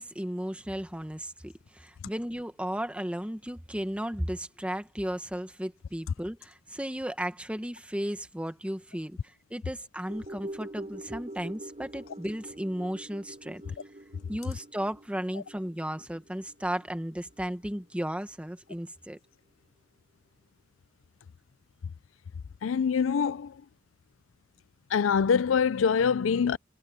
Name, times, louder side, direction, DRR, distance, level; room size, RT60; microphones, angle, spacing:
voice 1, 0.0-9.2 9.5-13.6 14.3-19.2, equal, 5° right, 1.3 m, -35 dB
sound 1, 10.1-18.5 18.8-18.9, right 1 dB, 35° right, 4.1 m, -45 dB
voice 2, 22.6-23.5 24.9-26.6, left 6 dB, 80° left, 0.4 m, -24 dB
head